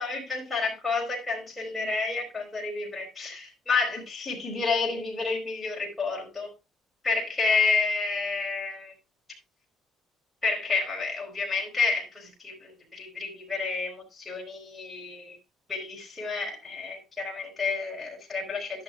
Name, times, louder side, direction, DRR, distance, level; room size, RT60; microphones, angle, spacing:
voice 1, 0.0-6.5 7.0-8.9 10.4-15.4 15.7-18.8, left 4 dB, 10° left, 4.5 m, -30 dB
12.0 x 11.0 x 2.4 m
cardioid pair, 180°, 0 cm